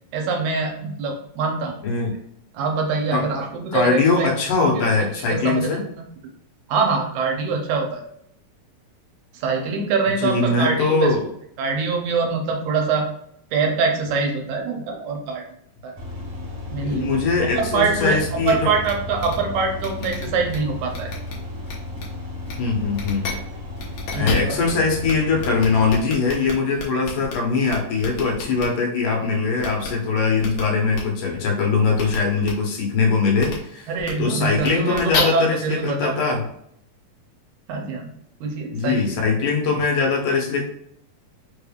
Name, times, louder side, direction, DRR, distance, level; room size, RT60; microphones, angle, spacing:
voice 1, 0.1-1.7 2.5-4.3 4.7-6.0 6.7-8.0 9.3-11.1 11.6-13.1 13.5-15.4 15.8-16.0 16.7-17.2 17.5-18.2 18.5-21.1 24.1-24.6 33.9-36.1 37.7-38.1 38.4-39.1, right 4 dB, 75° right, 2 dB, 2.1 m, -24 dB
voice 2, 3.7-5.9 10.2-11.2 16.8-18.7 22.6-23.3 24.1-33.9 34.2-36.4 38.7-40.6, left 4 dB, 90° left, -1 dB, 2.7 m, -21 dB
sound 1, 16.0-26.0, left 2 dB, 35° right, 1.4 m, -34 dB
sound 2, 18.4-18.5 18.8-18.9 19.2-19.3 19.8-20.6 20.9-21.3 21.6-22.0 22.4-22.5 22.9-23.3 23.8-24.7 25.0-25.1 25.4-27.3 27.7-28.6 29.6-29.9 30.4-30.6 30.9-31.0 31.9-32.2 32.4-32.5 33.4-33.5 34.0-34.1 34.6-35.2, left 4 dB, 70° left, 2.3 m, -30 dB
5.5 x 3.3 x 2.3 m, 0.70 s
omnidirectional pair, 3.6 m